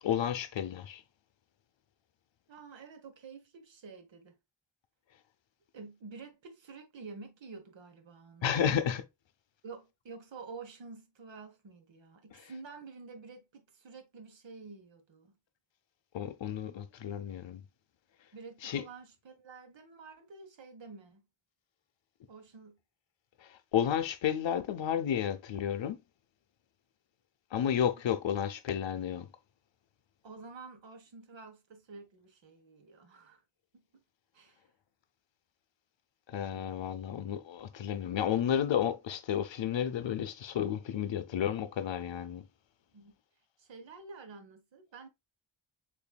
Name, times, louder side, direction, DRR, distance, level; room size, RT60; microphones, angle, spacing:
voice 1, 0.0-1.0 8.4-9.0 12.3-12.4 16.1-17.6 18.6-18.8 23.4-26.0 27.5-29.3 36.3-42.5, left 9 dB, 70° left, 0.7 m, -32 dB
voice 2, 2.5-4.4 5.7-8.9 9.6-15.4 18.3-21.3 22.3-22.8 30.2-33.4 33.7-34.0 34.3-34.6 36.5-36.7 42.9-43.1 43.6-45.1, right 4 dB, 70° right, 1.2 m, -49 dB
6.9 x 2.6 x 2.3 m
wide cardioid pair, 110°, 47 cm